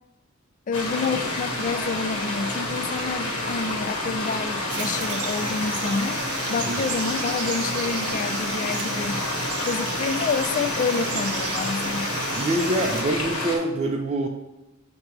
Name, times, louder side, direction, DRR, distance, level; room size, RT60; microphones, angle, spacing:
sound 1, 0.7-13.6, left 2 dB, 70° left, 1.6 m, -29 dB
voice 1, 0.7-6.2 6.5-9.2 9.6-12.1, left 5 dB, 35° left, 11 dB, 0.3 m, -28 dB
Frog, 4.7-13.0, right 5 dB, 75° right, 0.7 m, -34 dB
voice 2, 12.3-14.3, right 1 dB, 30° right, 1 dB, 0.5 m, -25 dB
7.8 x 2.9 x 4.5 m, 0.95 s
head